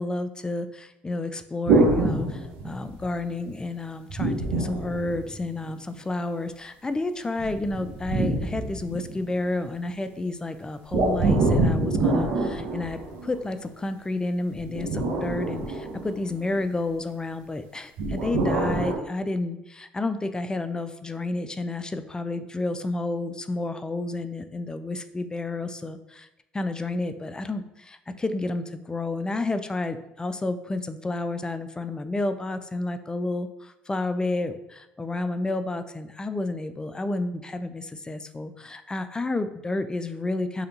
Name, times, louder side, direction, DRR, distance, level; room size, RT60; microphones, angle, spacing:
voice 1, 0.0-26.3 26.5-40.7, left 2 dB, 20° left, 10 dB, 0.3 m, -30 dB
sound 1, 1.7-3.1 4.1-5.7 7.4-9.4 10.9-13.5 14.6-16.5 18.0-19.0, right 2 dB, 75° right, 0.8 m, -25 dB
3.3 x 2.8 x 3.9 m, 0.91 s
supercardioid pair, 70°, 4 cm